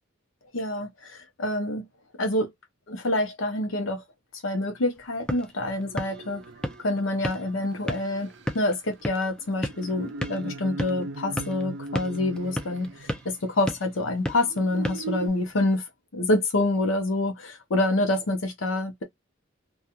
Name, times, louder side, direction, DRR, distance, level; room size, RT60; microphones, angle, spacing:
voice 1, 0.5-1.8 2.2-2.5 2.9-4.0 4.4-6.4 6.8-15.9 16.1-19.0, left 2 dB, 90° left, 0.8 m, -27 dB
sound 1, 4.9-15.8, equal, 5° left, 0.4 m, -36 dB
sound 2, 5.8-13.7 14.3-15.3, right 3 dB, 65° right, 0.4 m, -40 dB
2.8 x 2.4 x 2.3 m
head